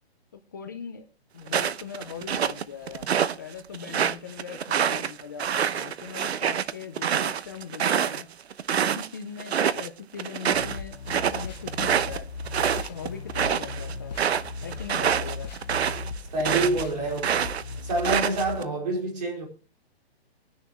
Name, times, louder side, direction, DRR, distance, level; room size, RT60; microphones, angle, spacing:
voice 1, 0.5-1.0 1.3-3.1 3.4-8.3 8.8-12.3 12.6-14.2 14.6-15.5, left 7 dB, 20° left, 0.5 m, -40 dB
sound 1, 1.5-3.4 3.7-9.1 9.4-9.9 10.2-16.8 17.2-18.6, right 8 dB, 75° right, 1.0 m, -26 dB
sound 2, 10.5-18.6, left 3 dB, 40° left, 0.9 m, -37 dB
voice 2, 16.3-17.5 17.8-19.5, right 2 dB, 40° right, 4.7 m, -27 dB
21.5 x 10.0 x 3.1 m
hypercardioid pair, 175°, 32 cm